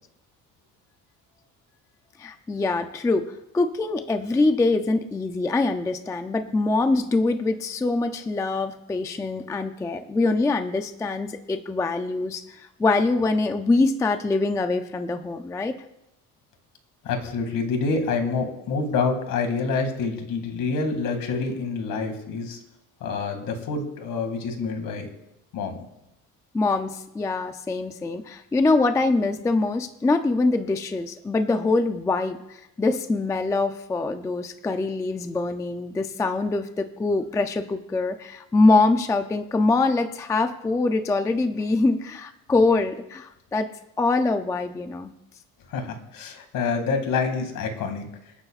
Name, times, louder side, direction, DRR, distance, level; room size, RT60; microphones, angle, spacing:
voice 1, 2.2-15.8 26.5-43.7 44.0-45.1, left 3 dB, 10° left, 8 dB, 0.3 m, -24 dB
voice 2, 17.0-22.6 23.0-25.1 25.5-25.8 45.7-48.0, left 4 dB, 60° left, 5 dB, 2.2 m, -27 dB
27.0 x 9.7 x 2.4 m, 0.87 s
cardioid pair, 170°, 37 cm